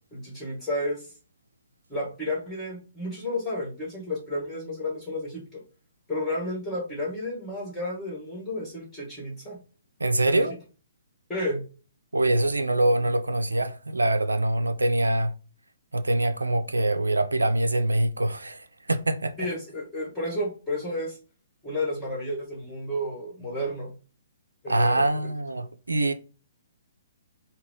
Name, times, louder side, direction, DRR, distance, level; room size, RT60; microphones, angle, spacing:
voice 1, 0.1-1.1 1.9-5.6 6.1-9.6 10.2-10.4 11.3-11.6 19.4-21.2 21.6-23.9 24.6-25.1, left 1 dB, 10° left, 1.5 m, -31 dB
voice 2, 10.0-10.6 12.1-15.3 15.9-19.5 24.7-26.1, right 1 dB, 75° right, 0.3 m, -24 dB
3.7 x 2.1 x 3.7 m
figure-of-eight pair, 125°, 0 cm